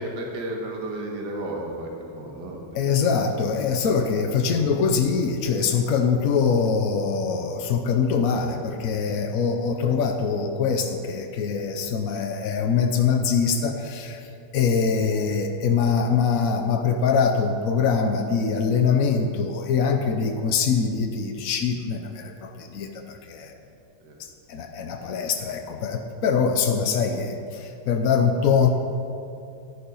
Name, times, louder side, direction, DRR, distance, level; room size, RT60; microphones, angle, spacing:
voice 1, 0.0-2.6 24.0-24.2, right 1 dB, 55° right, 0 dB, 2.1 m, -33 dB
voice 2, 2.7-23.5 24.2-28.7, left 6 dB, 70° left, 5 dB, 0.8 m, -23 dB
13.0 x 10.0 x 5.5 m, 2.6 s
omnidirectional pair, 2.4 m